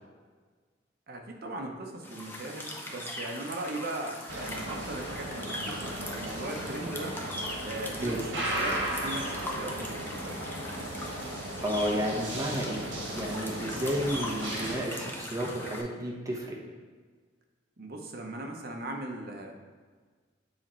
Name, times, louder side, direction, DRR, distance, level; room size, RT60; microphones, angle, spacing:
voice 1, 1.1-7.2 7.6-10.4 17.8-19.5, right 2 dB, 55° right, 2 dB, 0.8 m, -39 dB
sound 1, 2.0-15.8, left 1 dB, 10° left, 0.6 m, -40 dB
sound 2, 4.3-14.8, right 1 dB, 80° right, 1.4 m, -36 dB
voice 2, 11.6-16.6, equal, 15° right, -2 dB, 0.9 m, -32 dB
7.6 x 3.0 x 4.3 m, 1.5 s
head